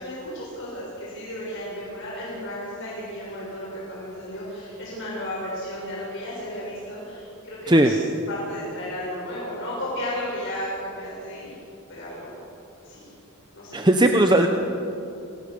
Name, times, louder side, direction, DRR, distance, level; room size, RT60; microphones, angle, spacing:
voice 1, 0.0-8.0 8.3-11.6 11.9-12.4 12.8-13.1 13.5-13.8, left 1 dB, 55° left, -6 dB, 6.8 m, -34 dB
voice 2, 13.7-14.5, right 1 dB, 20° right, 4 dB, 0.9 m, -17 dB
27.0 x 18.0 x 6.9 m, 2.7 s
head